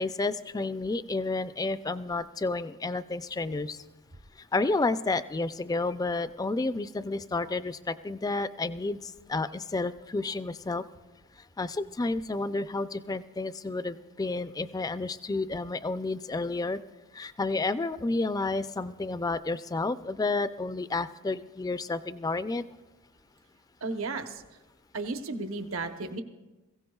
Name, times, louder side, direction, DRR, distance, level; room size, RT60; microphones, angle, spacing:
voice 1, 0.0-3.8 4.5-10.8 11.6-16.8 17.1-22.6, left 3 dB, 15° left, 13 dB, 0.3 m, -31 dB
voice 2, 23.8-24.4 24.9-26.2, right 3 dB, 70° right, 7 dB, 0.9 m, -34 dB
22.0 x 16.0 x 2.3 m, 1.1 s
head